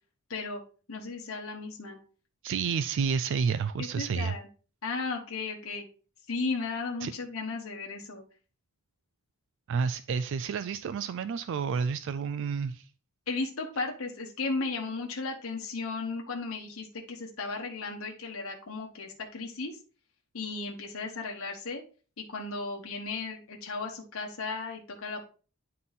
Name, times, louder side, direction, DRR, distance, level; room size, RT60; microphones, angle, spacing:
voice 1, 0.3-0.6 0.9-2.0 3.8-4.5 4.8-5.8 6.3-8.2 13.3-19.8 20.3-21.8 22.2-25.3, left 3 dB, 70° left, 0 dB, 1.0 m, -35 dB
voice 2, 2.4-4.4 7.0-7.1 9.7-12.9, right 6 dB, 60° right, 12 dB, 0.3 m, -30 dB
9.6 x 3.7 x 4.0 m, 0.38 s
head